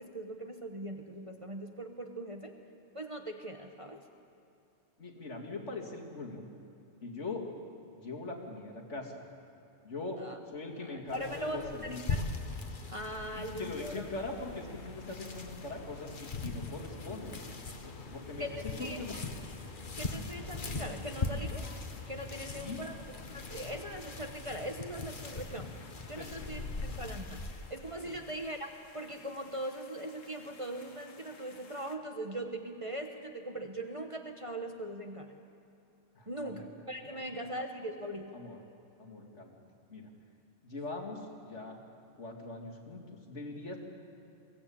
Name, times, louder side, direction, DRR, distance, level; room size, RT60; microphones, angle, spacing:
voice 1, 0.0-2.5 2.9-4.0 10.2-10.4 10.8-12.3 12.9-14.1 18.4-18.5 18.8-19.2 20.0-21.7 22.1-23.0 23.3-25.7 26.1-27.4 27.7-35.3 36.3-38.3, right 1 dB, 25° right, 4 dB, 1.2 m, -40 dB
voice 2, 5.0-6.5 7.0-7.4 8.0-9.2 9.8-10.2 10.5-12.0 13.3-17.4 17.8-18.5 18.8-19.1 22.3-22.8 26.2-26.4 28.0-28.1 36.1-36.6 38.3-38.6 39.0-39.6 39.9-40.1 40.6-41.8 42.2-43.0 43.3-43.8, left 3 dB, 65° left, -1 dB, 2.8 m, -41 dB
sound 1, 11.1-27.7, left 3 dB, 40° left, 1.4 m, -40 dB
sound 2, 12.9-32.0, left 5 dB, 85° left, 1.6 m, -58 dB
22.0 x 16.5 x 8.7 m, 2.8 s
omnidirectional pair, 1.3 m